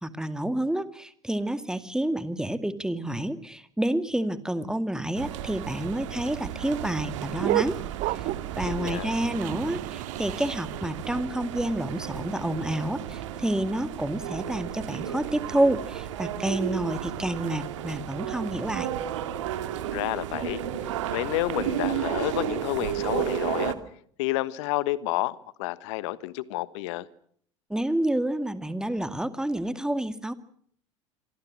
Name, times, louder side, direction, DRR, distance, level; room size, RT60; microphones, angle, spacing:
voice 1, 0.0-7.8 8.6-18.9 27.7-30.3, right 1 dB, 5° right, 11 dB, 2.2 m, -29 dB
sound 1, 5.1-23.7, right 11 dB, 70° right, 2.3 m, -33 dB
sound 2, 5.2-10.9, right 16 dB, 50° right, 1.1 m, -33 dB
voice 2, 8.6-9.1 19.9-20.6 21.1-23.7 24.2-27.1, left 18 dB, 60° left, 18 dB, 1.3 m, -30 dB
27.0 x 24.0 x 6.3 m, 0.63 s
figure-of-eight pair, 70°, 17 cm